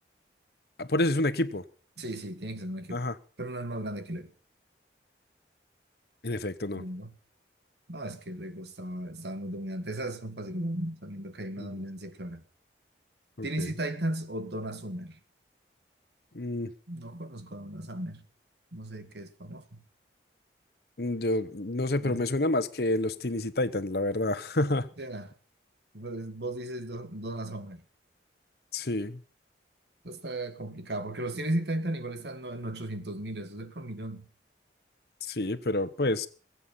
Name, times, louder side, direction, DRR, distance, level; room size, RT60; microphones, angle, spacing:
voice 1, 0.8-1.6 2.9-3.1 6.2-6.8 11.6-11.7 13.4-13.7 16.3-16.7 21.0-24.9 28.7-29.2 35.3-36.3, left 2 dB, 60° left, 1.0 m, -28 dB
voice 2, 2.0-3.0 3.4-4.3 6.7-7.1 7.9-12.4 13.4-15.2 16.9-18.2 18.7-19.8 22.0-22.2 25.0-25.3 25.9-27.8 30.0-34.3, right 1 dB, 70° right, 1.8 m, -36 dB
21.5 x 8.4 x 5.5 m
head